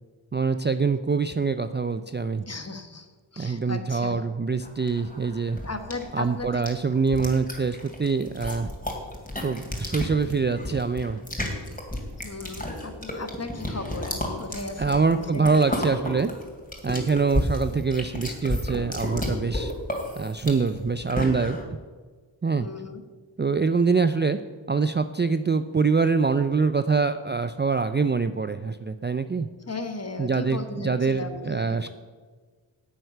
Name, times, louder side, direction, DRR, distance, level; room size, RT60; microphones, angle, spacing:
voice 1, 0.3-2.4 3.4-5.6 6.1-8.7 9.4-11.2 14.8-16.3 16.8-19.7 20.2-21.6 22.4-22.7 23.4-24.4 24.7-29.5 30.2-31.9, right 4 dB, 25° right, 10 dB, 0.4 m, -24 dB
voice 2, 2.5-3.1 3.3-4.2 5.6-6.6 12.2-15.5 22.6-23.0 29.7-31.9, left 3 dB, 30° left, 7 dB, 1.3 m, -36 dB
sound 1, 4.6-21.6, left 1 dB, 15° left, 2.7 m, -32 dB
9.4 x 7.9 x 6.7 m, 1.5 s
wide cardioid pair, 50°, 47 cm